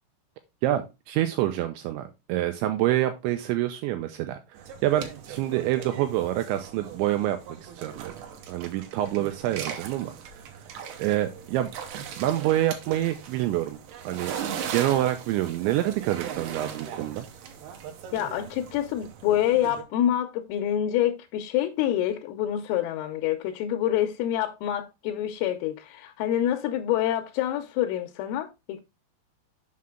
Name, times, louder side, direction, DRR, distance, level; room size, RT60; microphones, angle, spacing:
voice 1, 0.6-8.2 8.5-10.4 11.0-11.7 12.2-13.8 14.0-14.3 14.7-17.3, right 13 dB, 85° right, 2.6 m, -27 dB
sound 1, 4.6-19.8, right 8 dB, 70° right, 2.6 m, -39 dB
voice 2, 18.1-28.8, left 11 dB, 85° left, 3.2 m, -27 dB
7.6 x 5.7 x 3.6 m
omnidirectional pair, 6.0 m